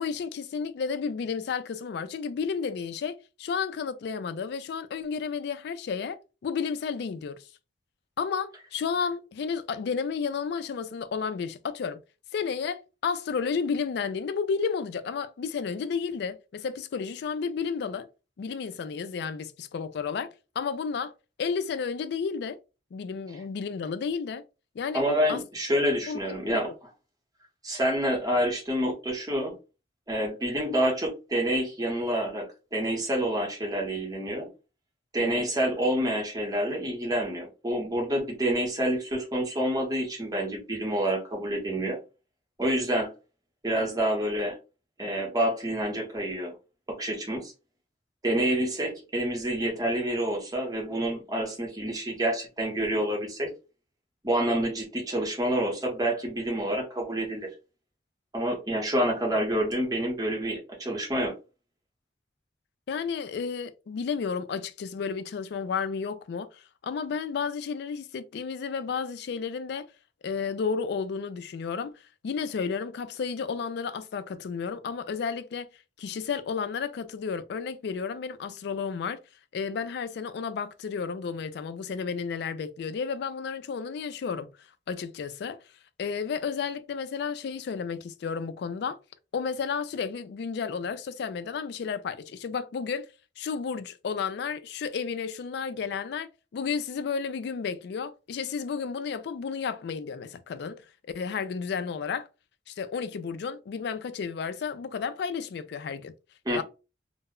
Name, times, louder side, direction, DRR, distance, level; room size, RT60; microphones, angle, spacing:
voice 1, 0.0-7.4 8.2-12.0 12.3-18.1 18.4-21.1 21.4-22.6 22.9-24.4 24.8-25.0 25.3-25.4 26.1-26.7 35.2-35.4 62.9-69.9 70.2-71.9 72.2-75.7 76.0-79.2 79.5-84.5 84.9-85.6 86.0-89.0 89.3-93.1 93.4-100.8 101.1-102.3 102.7-106.1 106.5-106.6, left 6 dB, 60° left, 0.3 m, -32 dB
voice 2, 24.9-26.7 27.6-29.5 30.1-34.5 35.1-42.0 42.6-43.1 43.6-44.6 45.0-46.5 46.9-47.5 48.2-53.5 54.2-57.5 58.3-61.3 106.5-106.6, right 1 dB, 20° right, 0.9 m, -28 dB
2.2 x 2.0 x 3.6 m
head